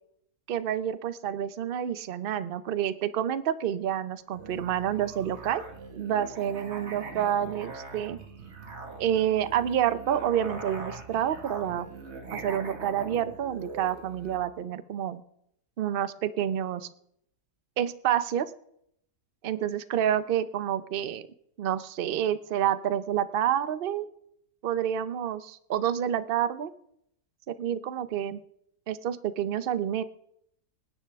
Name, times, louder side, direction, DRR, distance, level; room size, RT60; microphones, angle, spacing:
voice 1, 0.5-5.6 5.9-8.2 9.0-11.9 12.3-15.2 15.8-16.9 17.8-18.5 19.4-21.2 21.6-24.1 24.6-26.7 27.5-28.4 28.9-30.0, right 10 dB, 85° right, 14 dB, 0.4 m, -28 dB
Musical instrument, 4.3-14.5, right 3 dB, 45° right, 1.9 m, -42 dB
26.5 x 10.0 x 3.5 m, 0.74 s
omnidirectional pair, 1.7 m